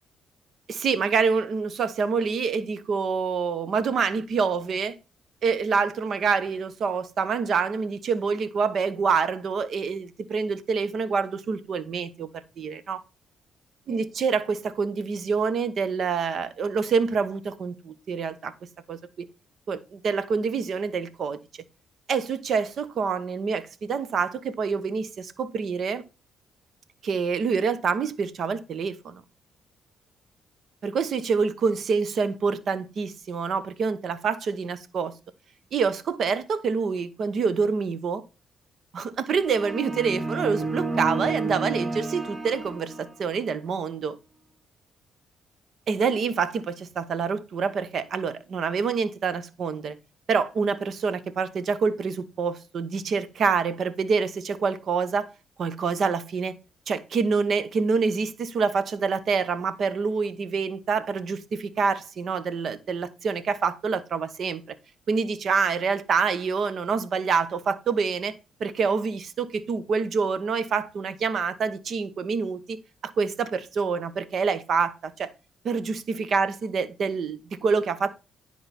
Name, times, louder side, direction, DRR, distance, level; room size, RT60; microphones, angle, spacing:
voice 1, 0.7-4.9 5.4-12.3 12.6-13.0 13.9-18.5 18.9-19.3 19.7-21.4 22.1-26.0 27.0-29.2 30.8-35.1 35.7-38.2 38.9-44.2 45.9-50.0 50.3-55.3 55.6-56.5 56.9-64.6 65.1-68.3 68.6-72.8 73.0-75.3 75.6-75.9 76.3-78.1, right 5 dB, 60° right, 0.9 m, -26 dB
sound 1, 39.4-43.4, right 3 dB, 25° right, 1.3 m, -31 dB
10.0 x 4.7 x 4.1 m
cardioid pair, 90°, 0 cm